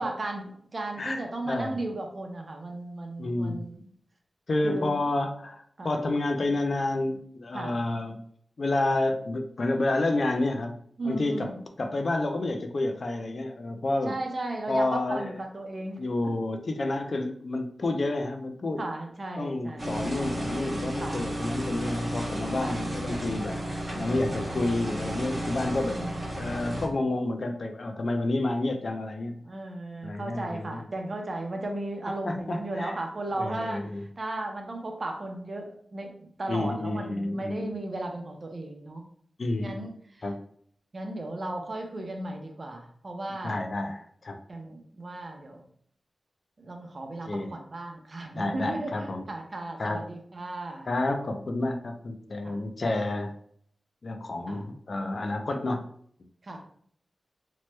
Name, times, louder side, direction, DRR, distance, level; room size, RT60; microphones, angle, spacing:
voice 1, 0.0-3.9 4.6-4.9 5.8-6.1 7.5-7.8 11.0-11.5 14.1-16.0 18.8-19.8 21.0-21.3 22.6-22.8 23.9-24.3 25.8-26.1 29.4-39.0 39.6-40.2 40.9-43.6 44.5-45.6 46.6-50.9 52.4-52.6 54.5-54.6 56.4-56.6, right 2 dB, 40° right, 2 dB, 0.5 m, -35 dB
voice 2, 1.5-1.8 3.2-3.6 4.5-8.2 8.6-10.8 11.0-11.5 11.8-14.1 14.7-15.4 16.0-18.8 19.4-26.0 26.3-29.4 30.0-30.8 32.2-32.9 33.3-34.0 36.5-37.7 39.4-39.9 40.2-40.4 43.4-44.4 47.3-47.5 48.4-49.2 49.8-50.0 50.9-53.3 54.0-55.9, left 2 dB, 50° left, 5 dB, 0.4 m, -29 dB
sound 1, 19.8-26.9, equal, 25° right, 1.0 m, -33 dB
2.9 x 2.1 x 3.1 m, 0.62 s
wide cardioid pair, 130°, 0 cm